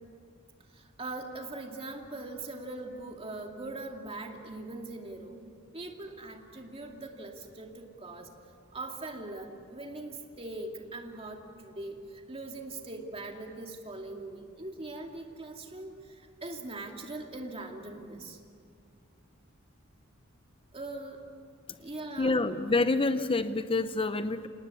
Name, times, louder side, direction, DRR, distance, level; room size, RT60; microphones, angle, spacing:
voice 1, 0.7-5.4 5.7-8.3 8.7-18.4 20.7-21.2 21.8-22.3, right 2 dB, 30° right, 2 dB, 2.4 m, -41 dB
voice 2, 22.2-24.5, left 3 dB, 25° left, 11 dB, 0.7 m, -27 dB
27.0 x 19.0 x 8.5 m, 2.3 s
head